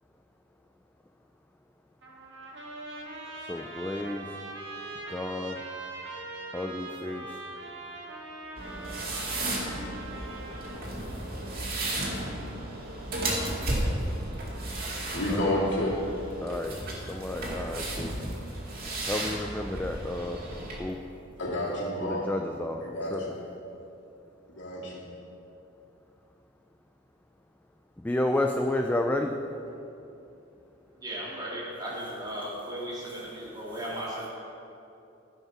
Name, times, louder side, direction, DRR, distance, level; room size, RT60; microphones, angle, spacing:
Trumpet, 2.0-10.9, right 2 dB, 65° right, 1.7 m, -42 dB
voice 1, 3.5-4.3 5.1-5.6 6.5-7.4 15.3-15.5 16.4-16.8 17.1-18.1 19.0-20.5 20.8-21.0 22.0-23.2 28.0-29.4, left 1 dB, 10° left, 3 dB, 0.4 m, -31 dB
sound 1, 8.6-20.8, right 1 dB, 50° right, 2.2 m, -34 dB
voice 2, 15.1-16.0 21.4-22.3 22.8-23.4 24.5-25.1, left 1 dB, 65° left, -4 dB, 2.6 m, -30 dB
voice 3, 31.0-34.3, right 1 dB, 20° right, -6 dB, 2.8 m, -36 dB
14.5 x 5.5 x 5.9 m, 2.8 s
head